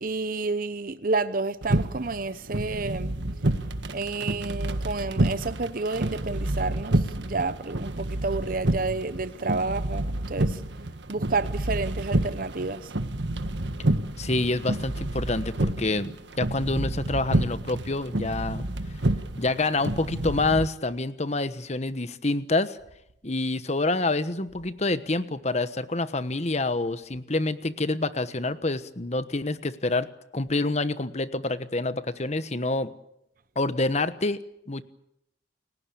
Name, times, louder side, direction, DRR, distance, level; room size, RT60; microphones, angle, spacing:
voice 1, 0.0-3.1 3.9-10.6 11.1-12.9, right 3 dB, 50° right, 0.9 m, -30 dB
sound 1, 1.6-20.7, right 1 dB, 70° right, 1.6 m, -29 dB
voice 2, 14.2-18.7 19.4-22.8 23.2-30.1 30.3-32.9 33.5-34.4 34.7-34.8, left 2 dB, 35° left, 1.2 m, -27 dB
29.5 x 17.5 x 8.6 m
head